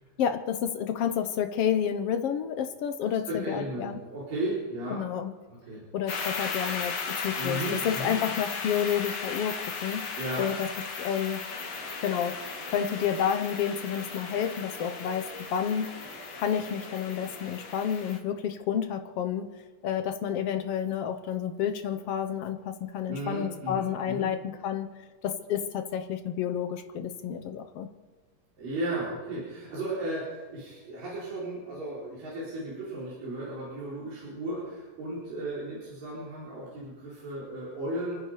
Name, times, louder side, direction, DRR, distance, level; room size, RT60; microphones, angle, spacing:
voice 1, 0.2-4.0 4.9-5.3 5.9-6.9 7.2-10.1 10.4-10.7 11.0-11.4 12.0-12.3 12.7-15.2 15.5-15.9 16.3-19.5 19.8-24.9 25.2-27.9, left 8 dB, 70° left, 7 dB, 1.5 m, -30 dB
voice 2, 3.0-5.0 5.5-5.8 7.4-8.1 10.2-10.5 23.1-24.3 28.6-38.2, right 1 dB, 75° right, -8 dB, 6.3 m, -35 dB
sound 1, 6.1-18.2, left 5 dB, 45° left, 2.2 m, -36 dB
sound 2, 11.5-17.7, right 1 dB, 55° right, 4.8 m, -47 dB
28.5 x 10.0 x 5.1 m, 1.4 s
omnidirectional pair, 3.9 m